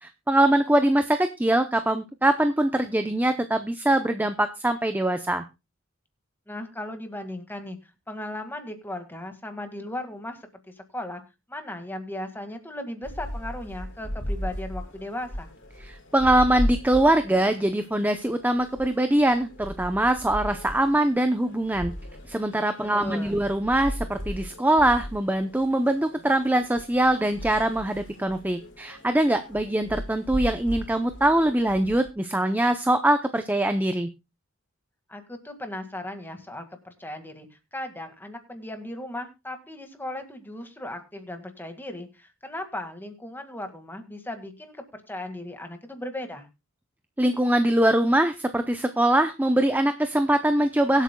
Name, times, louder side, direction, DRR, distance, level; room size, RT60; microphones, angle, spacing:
voice 1, 0.0-5.4 15.8-21.9 22.3-34.1 47.2-51.0, right 1 dB, 10° right, 8 dB, 0.6 m, -23 dB
voice 2, 6.5-7.8 8.1-10.4 10.7-11.2 11.5-15.5 23.0-23.4 35.1-46.5, left 1 dB, 10° left, 6 dB, 1.9 m, -37 dB
sound 1, 13.0-32.1, equal, 60° left, 3.2 m, -37 dB
23.5 x 8.2 x 2.3 m, 0.26 s
head